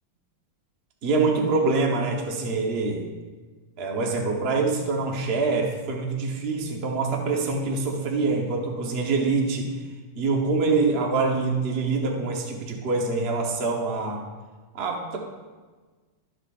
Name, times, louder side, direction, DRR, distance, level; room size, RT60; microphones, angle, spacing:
voice 1, 1.0-3.1 3.8-9.7 10.1-14.2 14.7-15.2, right 3 dB, 40° right, 1 dB, 1.0 m, -25 dB
13.0 x 6.2 x 2.5 m, 1.4 s
omnidirectional pair, 2.2 m